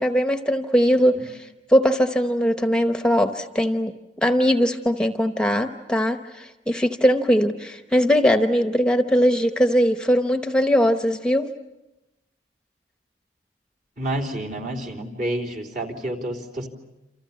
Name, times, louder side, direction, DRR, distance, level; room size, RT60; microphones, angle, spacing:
voice 1, 0.0-3.9 4.2-11.5, equal, 5° left, 6 dB, 0.9 m, -20 dB
voice 2, 14.0-16.7, right 1 dB, 50° right, 1 dB, 3.7 m, -29 dB
29.0 x 28.0 x 7.2 m, 0.96 s
head